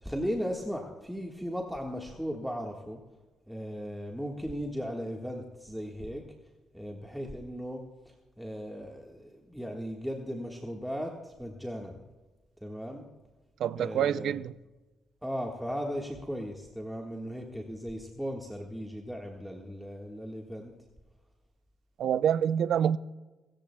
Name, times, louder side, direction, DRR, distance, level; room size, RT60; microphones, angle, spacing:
voice 1, 0.0-3.0 3.5-6.2 6.7-7.8 8.4-12.0 12.6-13.0 13.8-14.4 15.2-20.7, equal, ahead, 1.5 m, -37 dB
voice 2, 13.6-14.5 22.0-23.0, right 9 dB, 70° right, 0.4 m, -26 dB
24.0 x 14.0 x 2.2 m
cardioid pair, 90°, 0 cm